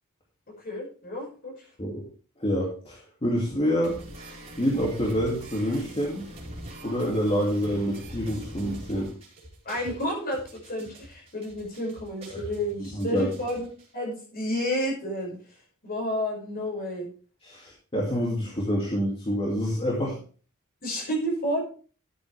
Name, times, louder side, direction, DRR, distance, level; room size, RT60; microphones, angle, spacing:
voice 1, 0.6-1.7 9.6-17.1 20.8-21.6, equal, 45° left, -1 dB, 5.8 m, -31 dB
voice 2, 2.4-3.9 4.6-6.2 6.8-9.1 12.9-13.3 17.5-20.1, equal, 25° left, -3 dB, 2.4 m, -27 dB
sound 1, 3.8-13.9, right 1 dB, 30° right, 4.6 m, -43 dB
13.0 x 8.4 x 3.4 m, 0.39 s
head